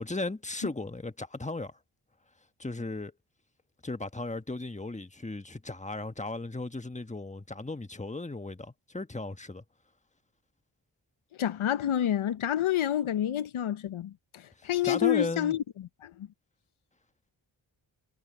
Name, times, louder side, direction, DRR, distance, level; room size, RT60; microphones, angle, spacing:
voice 1, 0.0-1.8 2.6-3.1 3.8-9.6 14.6-15.6, left 2 dB, 15° left, 1.4 m, -36 dB
voice 2, 11.4-16.3, left 11 dB, 75° left, 0.8 m, -29 dB
cardioid pair, 45°, 50 cm